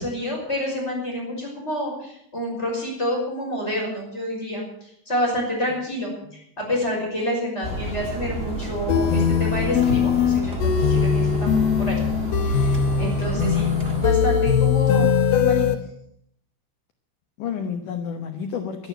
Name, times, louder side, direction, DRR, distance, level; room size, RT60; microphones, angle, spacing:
voice 1, 0.0-12.0 12.4-15.6, equal, 15° left, -3 dB, 5.7 m, -28 dB
sound 1, 7.6-14.1, right 1 dB, 45° right, 0.7 m, -31 dB
sound 2, 8.9-15.7, left 7 dB, 90° left, 1.5 m, -20 dB
voice 2, 13.0-13.6 17.4-18.9, left 7 dB, 70° left, 6 dB, 2.0 m, -31 dB
12.0 x 11.5 x 9.0 m, 0.72 s
omnidirectional pair, 5.0 m